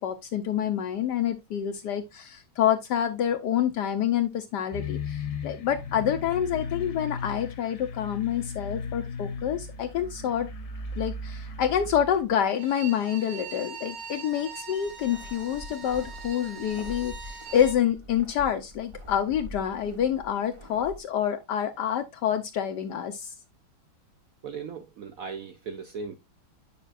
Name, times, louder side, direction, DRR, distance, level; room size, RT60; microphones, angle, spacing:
voice 1, 0.0-10.5 11.0-23.3, left 9 dB, 75° left, 1.0 m, -27 dB
sound 1, 4.7-12.2, left 4 dB, 45° left, 1.0 m, -36 dB
Bowed string instrument, 12.5-17.8, right 6 dB, 65° right, 1.9 m, -42 dB
sound 2, 14.8-21.0, equal, 35° right, 0.5 m, -44 dB
voice 2, 24.4-26.1, right 5 dB, 85° right, 0.7 m, -37 dB
9.0 x 5.1 x 2.4 m
omnidirectional pair, 2.3 m